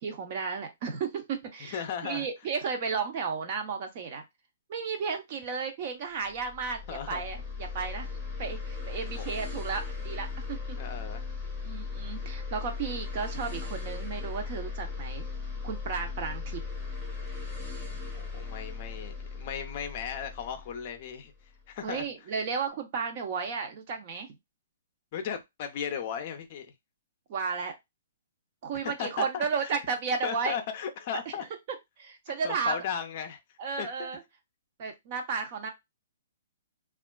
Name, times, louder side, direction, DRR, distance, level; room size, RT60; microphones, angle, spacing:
voice 1, 0.0-4.2 4.7-8.1 8.4-10.8 11.6-15.3 15.6-16.6 21.8-24.3 27.3-27.8 28.6-30.6 32.0-32.8 33.6-34.2 34.8-35.7, right 5 dB, 35° right, 0.7 m, -33 dB
voice 2, 1.7-2.3 6.9-7.2 9.2-9.3 10.8-11.3 18.1-21.3 21.7-22.1 25.1-26.7 28.8-29.7 30.2-31.4 32.4-33.4 33.8-34.1, left 8 dB, 35° left, 0.5 m, -36 dB
sound 1, 6.3-21.7, left 4 dB, ahead, 0.9 m, -37 dB
3.4 x 2.4 x 2.2 m
hypercardioid pair, 165°, 0 cm